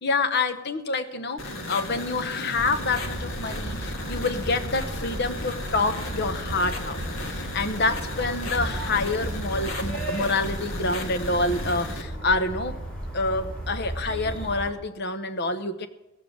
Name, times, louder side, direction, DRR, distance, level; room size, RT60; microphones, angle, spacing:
voice 1, 0.0-7.0 7.3-12.8 13.1-15.9, left 3 dB, 55° left, 9 dB, 1.0 m, -27 dB
sound 1, 1.4-12.0, left 1 dB, 90° left, 1.6 m, -35 dB
sound 2, 2.6-14.7, right 1 dB, 5° left, 5.8 m, -35 dB
17.5 x 7.2 x 7.8 m, 0.98 s
head